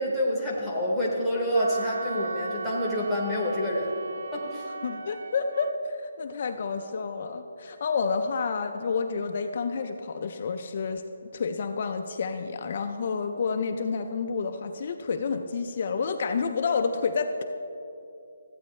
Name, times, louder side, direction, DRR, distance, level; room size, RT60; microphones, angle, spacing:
voice 1, 0.0-3.9 4.3-4.6, equal, 5° right, -6 dB, 0.8 m, -27 dB
Wind instrument woodwind instrument, 1.5-5.7, right 3 dB, 65° right, 0.4 m, -38 dB
voice 2, 4.8-11.0 11.3-17.4, left 5 dB, 30° left, 6 dB, 0.3 m, -29 dB
14.0 x 8.4 x 3.1 m, 2.7 s
hypercardioid pair, 180°, 0 cm